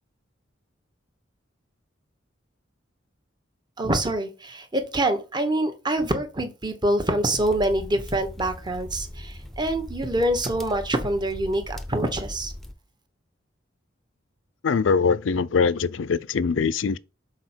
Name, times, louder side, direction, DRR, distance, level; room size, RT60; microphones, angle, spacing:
voice 1, 3.8-12.5, right 1 dB, 25° right, 1.2 m, -25 dB
sound 1, 7.3-12.7, left 1 dB, ahead, 0.7 m, -39 dB
voice 2, 14.6-17.0, left 5 dB, 75° left, 0.5 m, -22 dB
6.5 x 4.3 x 4.5 m
head